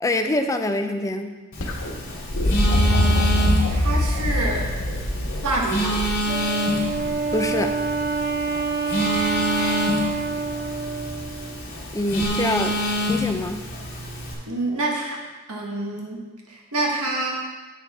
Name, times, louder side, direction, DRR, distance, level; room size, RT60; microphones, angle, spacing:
voice 1, 0.0-1.3 7.3-7.8 11.9-12.8 13.0-13.6, left 2 dB, 15° left, 6 dB, 0.5 m, -25 dB
Telephone, 1.5-14.3, equal, 40° left, 2.4 m, -27 dB
sound 1, 1.6-7.5 9.1-9.6 12.2-12.3, equal, 65° left, 1.2 m, -23 dB
voice 2, 3.7-4.7 5.4-6.0 14.5-15.2 15.5-16.2 16.5-17.4, right 2 dB, 80° right, -1 dB, 1.3 m, -26 dB
Wind instrument woodwind instrument, 6.3-11.7, right 4 dB, 40° right, 0.7 m, -27 dB
8.0 x 7.4 x 3.5 m, 1.3 s
head